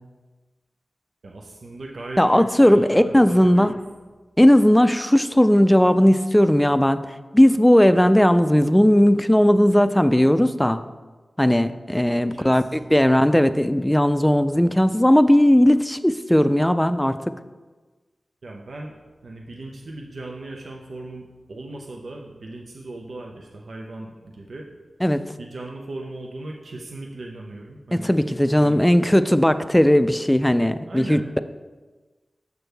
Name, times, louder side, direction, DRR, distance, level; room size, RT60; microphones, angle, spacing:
voice 1, 1.2-3.8 12.1-12.9 18.4-19.0 19.2-24.7 25.4-28.1 28.6-28.8 30.9-31.3, right 2 dB, 80° right, 0 dB, 0.6 m, -37 dB
voice 2, 2.2-3.7 4.4-7.0 7.3-10.8 11.4-17.2 25.0-25.2 27.9-31.4, equal, 10° left, 11 dB, 0.4 m, -17 dB
6.7 x 6.2 x 3.4 m, 1.3 s
cardioid pair, 45°, 0 cm